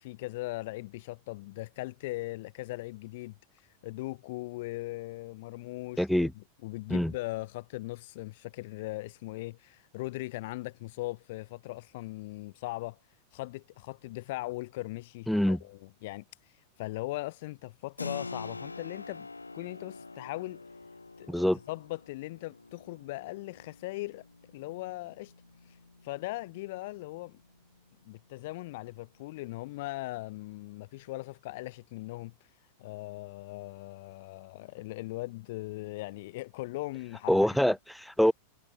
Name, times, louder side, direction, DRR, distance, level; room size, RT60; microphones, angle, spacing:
voice 1, 0.0-3.4 3.8-6.3 6.6-13.0 13.3-16.2 16.8-19.3 19.5-20.6 21.2-24.3 24.5-25.3 26.0-27.4 28.0-32.3 32.8-37.7, left 20 dB, 50° left, 1.7 m, -39 dB
voice 2, 6.0-6.3 6.9-7.1 15.3-15.6 21.3-21.6 37.3-38.3, equal, ahead, 2.8 m, -25 dB
Keyboard (musical), 18.0-28.4, left 3 dB, 80° left, 2.6 m, -46 dB
figure-of-eight pair, 90°, 0 cm